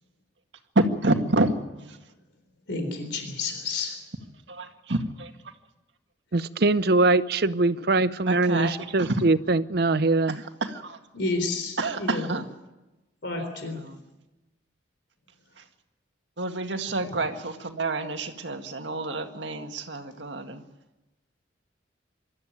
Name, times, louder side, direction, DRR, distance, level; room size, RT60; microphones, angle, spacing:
voice 1, 0.8-2.0 4.5-5.3 8.3-8.7 9.0-9.2 10.3-11.0 11.8-12.5 13.4-14.0 16.4-20.6, right 2 dB, 85° right, 6 dB, 1.9 m, -28 dB
voice 2, 2.7-4.0 11.1-12.3 13.2-13.8, left 3 dB, 80° left, 5 dB, 3.8 m, -30 dB
voice 3, 6.3-10.4, right 2 dB, 60° right, 15 dB, 0.7 m, -22 dB
24.5 x 13.5 x 9.2 m, 1.1 s
head